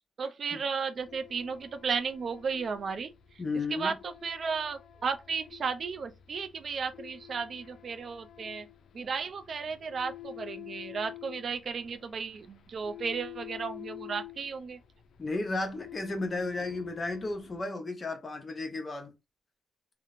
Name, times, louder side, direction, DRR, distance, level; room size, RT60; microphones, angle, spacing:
voice 1, 0.2-3.1 3.8-8.7 8.9-14.8, right 5 dB, 55° right, 0.3 m, -34 dB
sound 1, 1.0-17.6, left 13 dB, 80° left, 0.3 m, -49 dB
voice 2, 3.4-3.9 15.2-19.1, left 2 dB, 35° left, 0.7 m, -33 dB
2.9 x 2.0 x 2.5 m
cardioid pair, 110°, 0 cm